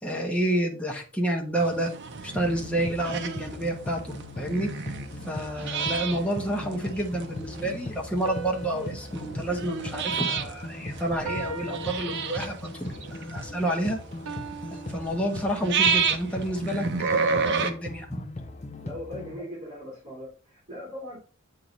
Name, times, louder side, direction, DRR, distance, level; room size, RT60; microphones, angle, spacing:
voice 1, 0.0-1.9 2.2-4.7 5.3-14.0 14.9-18.1, right 1 dB, 5° left, 0 dB, 1.1 m, -29 dB
sound 1, 1.6-17.7, right 5 dB, 55° right, 0.7 m, -31 dB
sound 2, 1.9-19.4, left 2 dB, 30° left, 0.6 m, -39 dB
sound 3, 5.8-7.2 8.3-10.7 11.3-12.8 14.3-15.9, right 4 dB, 85° right, 0.9 m, -42 dB
voice 2, 18.8-21.2, left 1 dB, 35° right, -4 dB, 2.6 m, -39 dB
7.7 x 2.8 x 5.1 m, 0.39 s
head